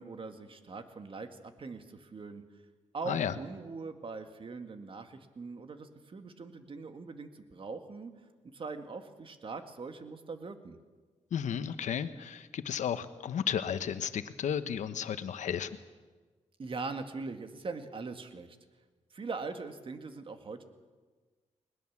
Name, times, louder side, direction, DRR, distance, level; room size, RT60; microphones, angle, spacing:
voice 1, 0.0-2.4 2.9-8.1 8.5-10.8 16.6-18.6 19.1-20.6, right 4 dB, 45° right, 7 dB, 2.0 m, -41 dB
voice 2, 11.3-15.7, left 8 dB, 85° left, 11 dB, 1.2 m, -33 dB
21.0 x 20.5 x 7.4 m, 1.3 s
cardioid pair, 95°, 12 cm